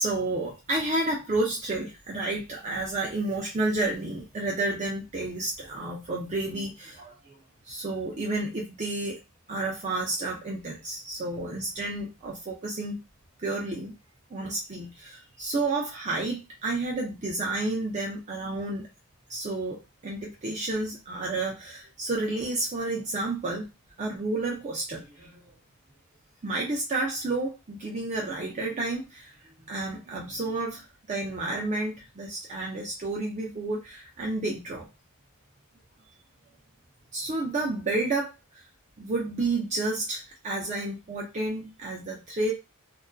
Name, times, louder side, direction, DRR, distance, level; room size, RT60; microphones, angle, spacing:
voice 1, 0.0-7.4 7.7-9.2 9.5-13.0 13.4-13.9 14.3-18.9 19.3-23.7 24.0-25.3 26.4-29.3 29.7-34.9 37.1-38.6 39.0-42.5, right 2 dB, 35° right, -2 dB, 0.5 m, -31 dB
2.6 x 2.3 x 2.2 m, 0.24 s
head